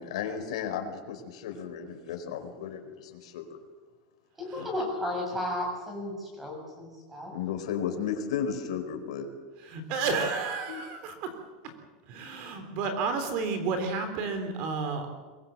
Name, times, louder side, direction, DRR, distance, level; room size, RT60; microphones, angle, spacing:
voice 1, 0.0-3.6 4.6-4.7 7.3-9.3 10.7-10.8, left 8 dB, 80° left, 6 dB, 4.4 m, -34 dB
voice 2, 4.6-7.3, left 1 dB, 5° right, 1 dB, 7.1 m, -33 dB
voice 3, 9.7-11.3 12.1-15.1, right 4 dB, 40° right, 7 dB, 3.5 m, -31 dB
24.5 x 21.5 x 7.7 m, 1.4 s
supercardioid pair, 180°, 3 cm